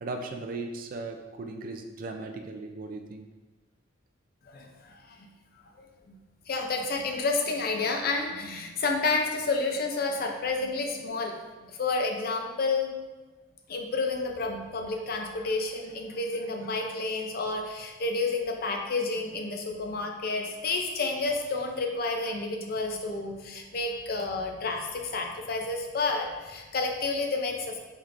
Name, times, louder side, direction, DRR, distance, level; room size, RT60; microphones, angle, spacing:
voice 1, 0.0-3.3, right 3 dB, 45° right, 4 dB, 0.3 m, -37 dB
voice 2, 4.4-5.3 6.1-6.2 6.5-11.3 11.6-12.9 13.7-27.8, left 3 dB, 50° left, 2 dB, 0.5 m, -30 dB
4.3 x 3.4 x 2.5 m, 1.2 s
head